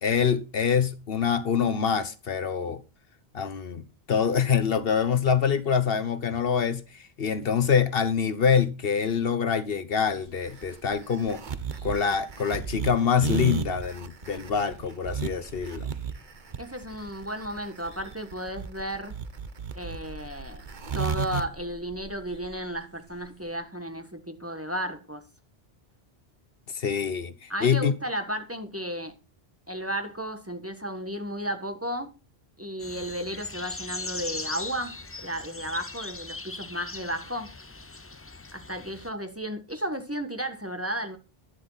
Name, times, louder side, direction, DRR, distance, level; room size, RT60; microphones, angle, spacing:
voice 1, 0.0-2.8 3.3-11.4 11.8-15.9 26.7-27.9, left 7 dB, 70° left, 1.2 m, -25 dB
sound 1, 10.0-23.6, equal, 75° right, 5.1 m, -53 dB
sound 2, 10.4-21.4, right 6 dB, 50° right, 1.1 m, -33 dB
voice 2, 16.6-19.2 19.7-20.6 20.9-25.3 27.5-29.2 29.7-32.2 32.6-34.9 35.2-37.5 38.5-41.2, equal, 15° right, 1.4 m, -33 dB
sound 3, 32.8-39.1, left 3 dB, 20° left, 0.4 m, -39 dB
11.5 x 11.5 x 4.0 m
omnidirectional pair, 1.0 m